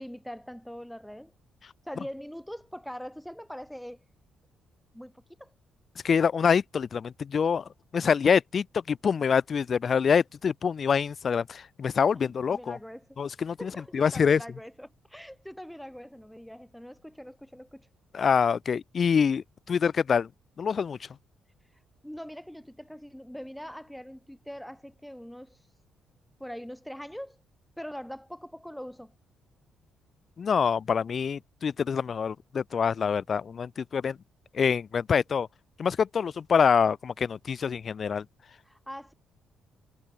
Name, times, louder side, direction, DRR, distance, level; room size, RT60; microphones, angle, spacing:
voice 1, 0.0-1.3 1.8-4.0 4.9-5.5 12.1-13.2 13.6-17.9 22.0-25.6 26.4-27.4 27.8-29.1 38.6-39.1, equal, ahead, 2.5 m, -42 dB
voice 2, 6.0-12.8 13.2-14.4 18.1-20.3 20.6-21.0 30.4-34.2 34.5-35.5 35.8-38.2, left 6 dB, 45° left, 0.6 m, -25 dB
cardioid pair, 90°, 0 cm